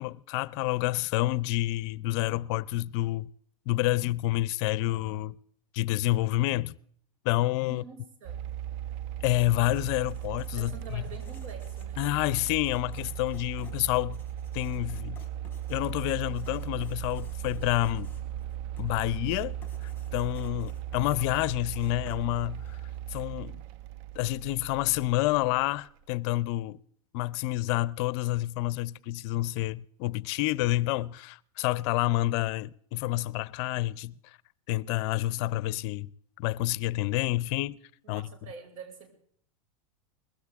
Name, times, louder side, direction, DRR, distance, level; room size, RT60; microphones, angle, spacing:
voice 1, 0.0-3.3 3.7-5.4 5.7-6.8 7.2-7.8 9.2-11.0 12.0-14.2 14.5-15.2 15.7-18.1 18.8-19.5 19.8-22.8 23.1-23.6 24.2-26.8 27.1-34.1 34.7-36.1 36.4-37.8 38.1-38.3, left 17 dB, 50° left, 0.6 m, -28 dB
voice 2, 7.7-8.4 10.5-12.0 38.0-39.1, right 4 dB, 70° right, 5.9 m, -46 dB
sound 1, 8.3-26.0, right 11 dB, 45° right, 0.6 m, -38 dB
Writing, 9.1-23.0, left 5 dB, 10° left, 3.9 m, -54 dB
20.5 x 15.5 x 3.6 m
hypercardioid pair, 120°, 18 cm